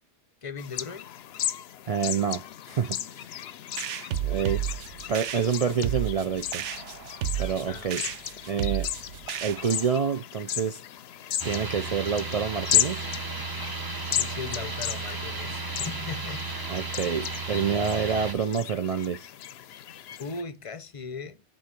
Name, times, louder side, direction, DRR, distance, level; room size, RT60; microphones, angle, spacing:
voice 1, 0.4-1.1 7.7-7.9 14.0-16.5 20.2-21.4, left 5 dB, 35° left, 0.6 m, -38 dB
sound 1, 0.6-20.4, left 11 dB, 65° left, 0.7 m, -35 dB
voice 2, 1.9-3.3 4.2-4.6 5.1-6.6 7.4-8.0 8.5-8.9 9.4-10.8 11.4-13.0 16.7-19.3, right 7 dB, 65° right, 0.3 m, -27 dB
sound 2, 3.8-10.0, right 10 dB, 80° right, 1.0 m, -32 dB
sound 3, 11.4-18.3, right 3 dB, 20° right, 0.8 m, -34 dB
6.2 x 4.3 x 5.8 m
omnidirectional pair, 1.2 m